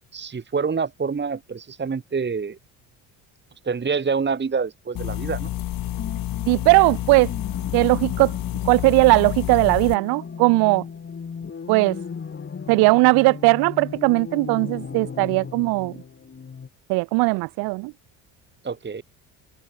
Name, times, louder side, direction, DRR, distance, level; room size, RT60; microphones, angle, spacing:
voice 1, 0.1-2.6 3.6-5.5 18.6-19.0, right 5 dB, 25° right, 2.1 m, -26 dB
sound 1, 4.9-9.9, left 14 dB, 50° left, 1.4 m, -29 dB
sound 2, 6.0-16.7, left 6 dB, 30° left, 2.5 m, -37 dB
voice 2, 6.5-7.3 7.7-8.3 8.6-10.8 11.7-12.0 12.7-15.9 16.9-17.9, right 26 dB, 60° right, 0.5 m, -18 dB
hypercardioid pair, 70°, 42 cm